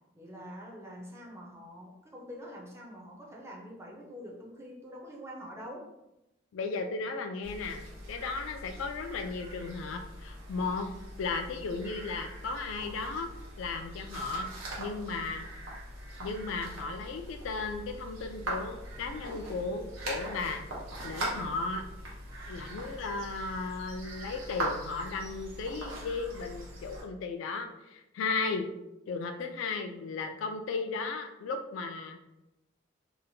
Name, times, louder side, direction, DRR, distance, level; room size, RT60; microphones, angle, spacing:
voice 1, 0.1-5.9, equal, 15° right, -2 dB, 0.4 m, -45 dB
voice 2, 6.5-10.9 11.2-13.3 13.6-14.5 14.8-15.5 16.2-20.6 21.0-21.8 22.5-28.7 29.1-32.2, left 4 dB, 75° left, 6 dB, 0.3 m, -35 dB
sound 1, 7.4-27.0, right 1 dB, 90° right, 0.9 m, -41 dB
2.8 x 2.1 x 2.6 m, 0.92 s
head